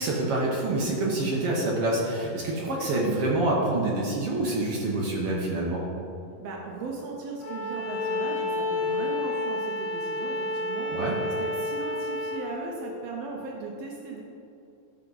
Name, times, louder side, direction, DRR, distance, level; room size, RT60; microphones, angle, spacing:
voice 1, 0.0-5.8 10.9-11.2, right 2 dB, 70° right, -3 dB, 1.4 m, -26 dB
voice 2, 6.4-14.2, right 4 dB, 85° right, -1 dB, 1.4 m, -38 dB
Bowed string instrument, 7.4-12.5, left 2 dB, 75° left, 2.5 m, -30 dB
12.5 x 5.8 x 4.0 m, 2.6 s
omnidirectional pair, 4.1 m